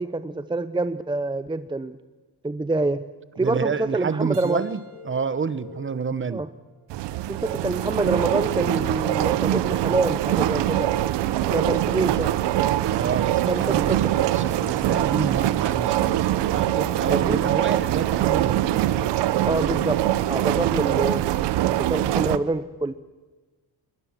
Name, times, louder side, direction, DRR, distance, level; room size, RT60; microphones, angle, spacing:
voice 1, 0.0-2.0 2.4-3.0 3.4-4.6 6.3-6.5 7.3-10.9 11.5-12.3 13.4-14.1 17.1-17.4 17.7-17.8 19.5-20.0 20.3-21.2 21.7-22.9, right 2 dB, 10° right, 12 dB, 0.6 m, -26 dB
voice 2, 3.4-4.8 5.0-6.4 12.8-16.2 16.5-18.9, right 6 dB, 30° right, 15 dB, 1.0 m, -28 dB
Keyboard (musical), 4.3-7.2, right 5 dB, 65° right, 4.4 m, -52 dB
sound 1, 4.9-5.9 7.9-8.8 10.8-11.8 13.7-14.7 16.6-17.6 19.6-20.0, left 3 dB, 45° left, 2.6 m, -42 dB
sound 2, 6.9-22.4, right 13 dB, 80° right, 1.0 m, -23 dB
21.0 x 20.0 x 7.5 m, 1.3 s
cardioid pair, 105°, 41 cm